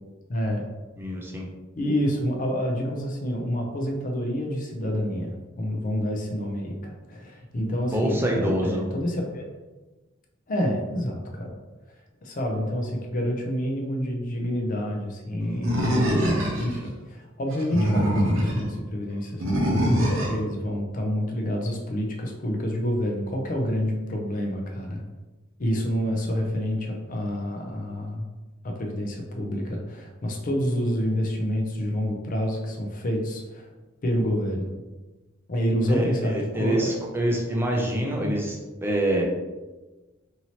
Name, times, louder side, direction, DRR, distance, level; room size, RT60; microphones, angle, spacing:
voice 1, 0.3-0.7 1.8-9.5 10.5-11.5 12.2-25.0 25.6-28.3 28.6-33.7 34.0-34.7 35.5-36.9, equal, 40° left, 1 dB, 0.5 m, -28 dB
voice 2, 1.0-1.5 7.9-8.9 35.9-39.2, right 1 dB, 10° right, -1 dB, 0.5 m, -26 dB
Animal, 15.6-16.8 17.5-18.6 19.4-20.4, equal, 70° right, 0.7 m, -23 dB
2.9 x 2.7 x 2.8 m, 1.2 s
head